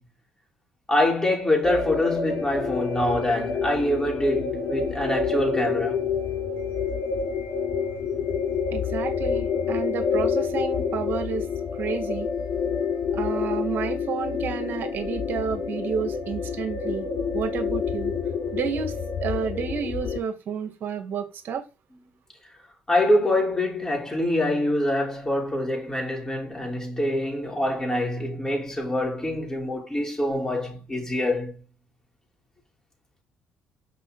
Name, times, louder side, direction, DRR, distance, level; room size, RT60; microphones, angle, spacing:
voice 1, 0.9-6.0 22.9-31.6, left 1 dB, 15° left, 4.3 m, -25 dB
sound 1, 1.6-20.2, left 5 dB, 75° left, 3.8 m, -28 dB
voice 2, 8.7-11.4 11.8-12.3 13.1-17.1 17.3-18.1 18.5-18.9 19.2-21.6, right 7 dB, 65° right, 2.2 m, -30 dB
6.2 x 5.4 x 4.0 m
supercardioid pair, 70°, 4 cm